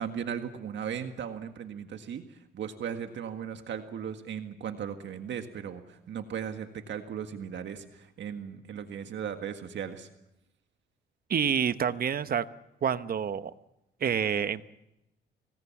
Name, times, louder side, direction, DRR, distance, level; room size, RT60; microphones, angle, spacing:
voice 1, 0.0-10.1, right 8 dB, 65° right, 7 dB, 1.8 m, -37 dB
voice 2, 11.3-12.4 12.8-13.5 14.0-14.6, right 7 dB, 50° right, 13 dB, 1.1 m, -28 dB
25.5 x 19.5 x 7.2 m, 0.89 s
cardioid pair, 90°, 20 cm